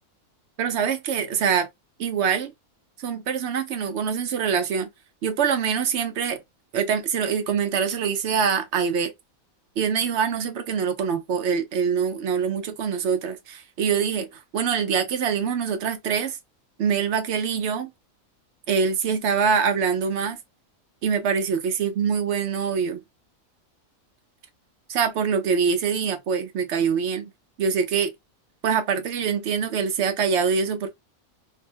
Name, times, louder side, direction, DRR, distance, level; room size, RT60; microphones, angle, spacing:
voice 1, 0.6-1.7 2.0-2.5 3.0-4.9 5.2-6.4 6.7-9.1 9.8-14.3 14.5-16.4 16.8-17.9 18.7-20.4 21.0-23.0 24.9-27.3 27.6-28.1 28.6-30.9, right 6 dB, 65° right, 0.8 m, -24 dB
2.7 x 2.1 x 2.8 m
omnidirectional pair, 1.4 m